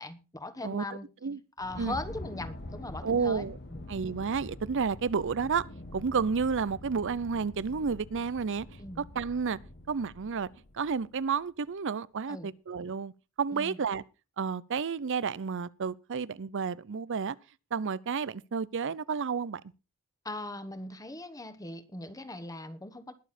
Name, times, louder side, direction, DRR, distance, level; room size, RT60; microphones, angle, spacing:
voice 1, 0.0-1.0 1.6-3.9 8.8-9.0 12.3-12.5 13.5-13.8 20.2-23.1, left 2 dB, 15° left, 1.2 m, -40 dB
sound 1, 1.6-11.2, left 1 dB, 50° left, 1.5 m, -45 dB
voice 2, 3.0-3.6 3.9-5.7 5.9-8.7 9.0-9.6 9.9-10.5 10.7-13.1 13.4-14.0 14.4-17.4 17.7-19.6, right 5 dB, 60° right, 0.6 m, -31 dB
20.5 x 7.1 x 4.2 m
head